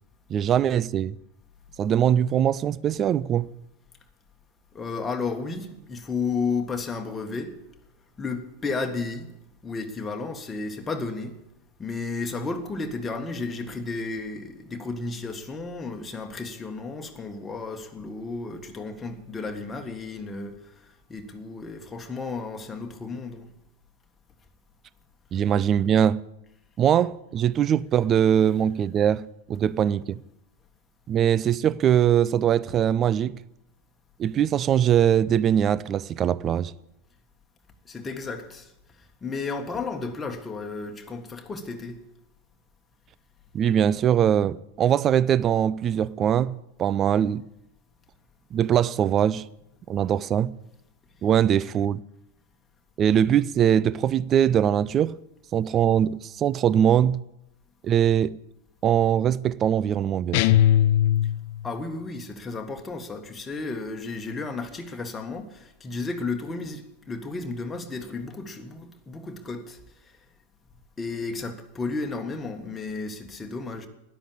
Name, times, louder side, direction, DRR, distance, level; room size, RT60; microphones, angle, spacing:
voice 1, 0.3-1.2 1.8-3.5 25.3-26.2 26.8-30.2 31.1-33.4 34.2-36.7 43.5-47.4 48.5-49.5 49.9-50.5 51.2-52.0 53.0-55.2 55.5-57.2 57.8-58.4 58.8-60.6, right 9 dB, 30° right, 0.4 m, -22 dB
voice 2, 4.7-7.6 8.2-9.3 9.6-11.4 11.8-23.5 37.8-38.7 39.2-42.0 61.6-70.2 71.0-73.9, left 4 dB, 15° left, 1.6 m, -33 dB
sound 1, 60.3-61.7, left 12 dB, 45° left, 0.4 m, -20 dB
13.0 x 11.0 x 8.5 m
figure-of-eight pair, 90°, 0 cm